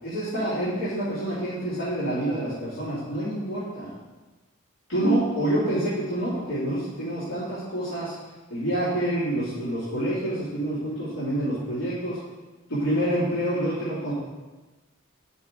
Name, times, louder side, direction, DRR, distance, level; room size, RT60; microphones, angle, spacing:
voice 1, 0.0-3.9 4.9-8.1 8.5-12.2 12.7-14.1, right 1 dB, 85° left, -13 dB, 2.6 m, -27 dB
9.0 x 5.6 x 3.8 m, 1.2 s
head